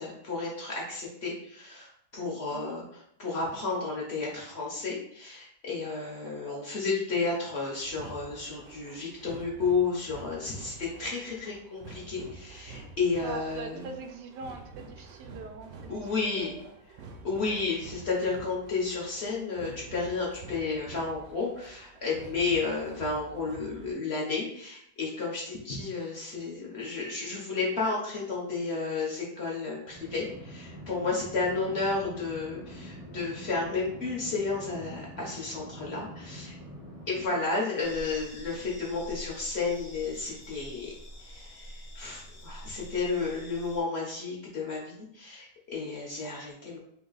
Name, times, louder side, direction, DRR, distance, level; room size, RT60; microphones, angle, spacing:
voice 1, 0.0-13.9 15.9-16.5 17.2-36.5 37.1-40.9 41.2-46.8, left 4 dB, 50° left, -3 dB, 0.8 m, -32 dB
voice 2, 6.2-6.6 13.2-16.1 16.4-16.8 17.3-17.5 31.7-31.8 37.2-37.4, right 4 dB, 90° right, 5 dB, 1.2 m, -43 dB
sound 1, 7.8-23.9, right 3 dB, 70° right, 0.9 m, -48 dB
sound 2, 29.9-37.3, equal, 5° right, 0.6 m, -45 dB
sound 3, 37.8-43.8, equal, 75° left, 0.3 m, -46 dB
3.1 x 2.8 x 3.9 m, 0.71 s
omnidirectional pair, 1.8 m